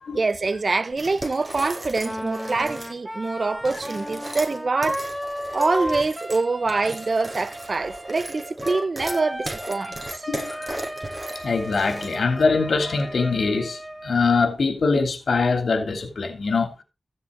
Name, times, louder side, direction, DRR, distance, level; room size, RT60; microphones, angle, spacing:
voice 1, 0.1-5.0 5.5-10.3, right 3 dB, 55° right, 0.9 m, -25 dB
sound 1, 0.9-3.0 3.6-12.4, right 1 dB, 30° right, 7.2 m, -36 dB
Wind instrument woodwind instrument, 2.0-14.5, equal, ahead, 1.9 m, -35 dB
voice 2, 10.3-10.8 11.4-16.7, left 4 dB, 80° left, 3.1 m, -23 dB
15.5 x 7.4 x 3.9 m
cardioid pair, 55°, 0 cm